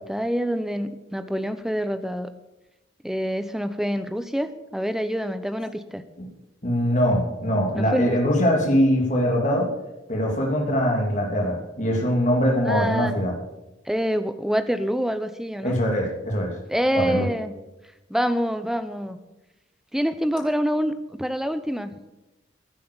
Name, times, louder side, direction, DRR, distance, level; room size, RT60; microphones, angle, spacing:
voice 1, 0.0-2.3 3.0-6.0 7.7-8.2 12.7-13.2 13.9-15.8 16.7-17.6 18.1-19.2 19.9-21.9, equal, ahead, 11 dB, 0.8 m, -26 dB
voice 2, 6.6-9.7 10.1-13.3 15.6-16.6 16.9-17.3, equal, 40° left, 0 dB, 3.0 m, -22 dB
15.5 x 9.4 x 7.0 m, 1.0 s
head